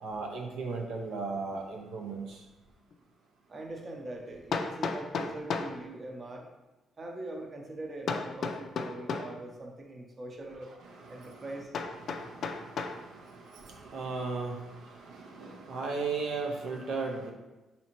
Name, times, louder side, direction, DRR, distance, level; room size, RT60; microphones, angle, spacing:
voice 1, 0.0-2.4 10.7-11.5 12.0-17.3, right 4 dB, 80° right, 0 dB, 0.5 m, -37 dB
Hammer, 2.9-3.0 4.5-5.8 8.1-9.4 11.7-13.0, left 4 dB, 60° left, 0.3 m, -34 dB
voice 2, 3.5-6.5 7.0-10.7 11.1-11.7, right 2 dB, 35° right, 2 dB, 0.6 m, -42 dB
4.1 x 2.7 x 2.9 m, 1.1 s
cardioid pair, 90°, 0 cm